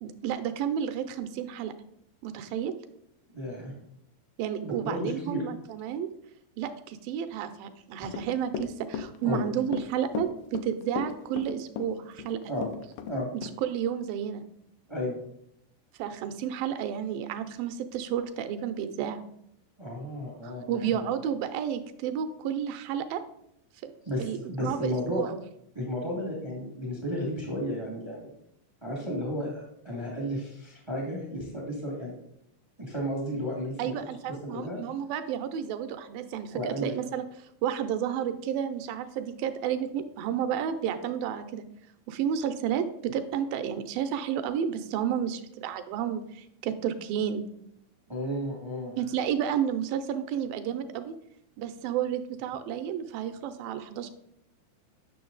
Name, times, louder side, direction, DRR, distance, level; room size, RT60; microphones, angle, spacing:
voice 1, 0.0-1.7 2.2-2.7 4.4-6.1 6.6-12.4 13.3-14.4 16.0-19.2 20.4-23.2 23.8-23.9 24.2-25.4 33.8-41.7 42.1-47.4 49.0-51.1 51.6-54.1, right 9 dB, 80° right, 9 dB, 2.2 m, -31 dB
voice 2, 3.3-3.7 4.6-5.4 9.2-9.4 12.5-12.7 13.1-13.3 14.9-15.2 19.8-20.8 24.0-25.2 25.7-28.3 28.8-32.1 32.8-33.9 34.5-34.8 36.5-36.9 48.1-48.9, left 1 dB, 35° right, -2 dB, 0.4 m, -33 dB
Run / Walk footsteps, 8.1-13.2 13.4-13.5, left 7 dB, 85° left, 1.9 m, -35 dB
9.3 x 6.3 x 3.9 m, 0.75 s
omnidirectional pair, 4.4 m